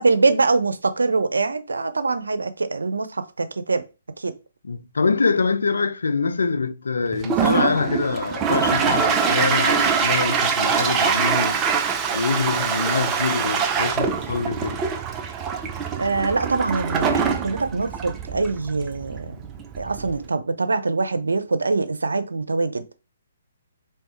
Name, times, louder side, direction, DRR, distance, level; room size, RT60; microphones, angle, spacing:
voice 1, 0.0-3.9 4.2-4.3 16.0-19.4 19.8-23.0, right 3 dB, 85° right, 0.7 m, -23 dB
voice 2, 4.6-11.6 12.1-14.8, left 4 dB, 80° left, 0.5 m, -24 dB
Toilet flush, 7.1-20.3, right 6 dB, 20° right, 0.6 m, -24 dB
3.5 x 3.2 x 4.3 m
hypercardioid pair, 145°, 0 cm